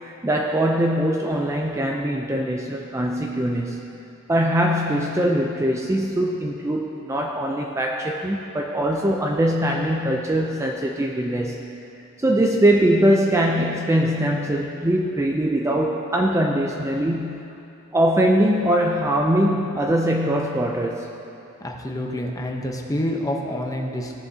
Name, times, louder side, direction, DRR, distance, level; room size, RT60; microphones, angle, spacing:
voice 1, 0.0-3.9 4.3-11.6 12.2-17.5 17.9-21.1, right 1 dB, 15° right, 0 dB, 0.4 m, -22 dB
voice 2, 21.6-24.1, left 1 dB, 15° left, 1 dB, 0.8 m, -27 dB
16.5 x 7.0 x 2.8 m, 2.8 s
head